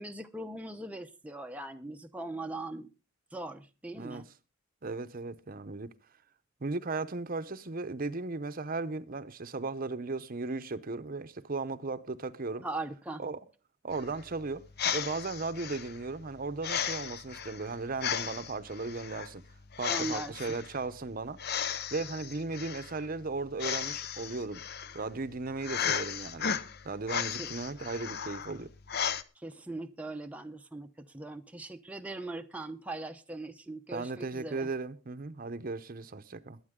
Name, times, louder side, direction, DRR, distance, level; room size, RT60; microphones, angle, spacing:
voice 1, 0.0-2.9 3.3-4.3 12.6-13.2 19.9-20.3 27.4-27.5 29.4-34.7, right 2 dB, 5° right, 0.7 m, -40 dB
voice 2, 4.8-5.9 6.6-12.6 13.2-13.4 13.8-14.6 14.9-19.4 19.8-21.4 21.9-24.6 24.9-26.5 26.8-28.7 33.9-36.6, right 3 dB, 45° right, 0.8 m, -36 dB
sound 1, 13.9-29.2, left 7 dB, 50° left, 0.8 m, -36 dB
21.5 x 8.7 x 3.7 m
head